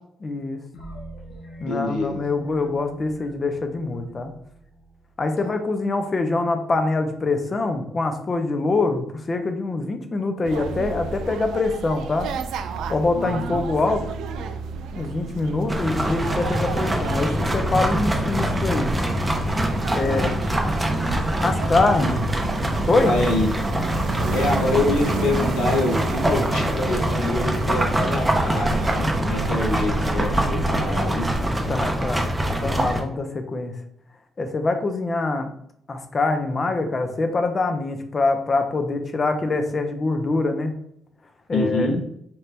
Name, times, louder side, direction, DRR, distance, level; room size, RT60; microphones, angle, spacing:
voice 1, 0.2-0.6 1.6-4.3 5.2-12.3 12.9-14.0 15.0-18.9 19.9-20.3 21.4-22.1 22.9-23.1 31.7-32.2 32.6-33.7 34.4-35.5 35.9-40.7 41.5-41.9, left 3 dB, 35° left, 6 dB, 0.7 m, -24 dB
sound 1, 0.7-5.4, right 1 dB, 60° left, 1.3 m, -42 dB
voice 2, 1.6-2.1 5.4-5.5 13.1-13.6 20.0-20.3 22.0-22.2 23.0-23.5 24.3-31.2 41.5-42.0, left 2 dB, 90° left, -1 dB, 1.1 m, -26 dB
sound 2, 10.4-30.2, right 5 dB, 80° right, 0.3 m, -32 dB
sound 3, 15.7-33.0, right 1 dB, 10° right, 0.8 m, -24 dB
4.4 x 2.6 x 3.4 m, 0.71 s
cardioid pair, 90°, 0 cm